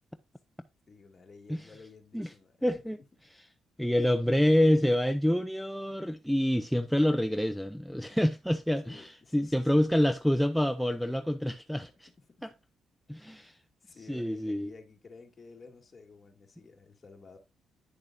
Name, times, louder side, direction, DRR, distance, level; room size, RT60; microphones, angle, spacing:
voice 1, 0.9-2.8 8.8-9.8 13.2-17.4, left 4 dB, 35° left, 2.2 m, -53 dB
voice 2, 2.6-3.0 3.8-12.1 12.4-12.5 13.1-13.6 14.1-14.7, left 1 dB, ahead, 0.5 m, -27 dB
10.0 x 6.7 x 2.4 m
cardioid pair, 90°, 0 cm